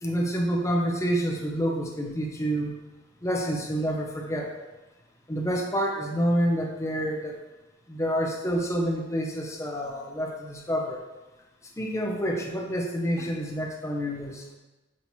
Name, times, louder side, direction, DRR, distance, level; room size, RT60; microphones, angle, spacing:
voice 1, 0.0-2.7 3.2-4.6 5.3-7.4 7.9-11.0 11.8-14.4, equal, 15° left, 0 dB, 0.6 m, -28 dB
6.1 x 2.9 x 2.7 m, 1.1 s
head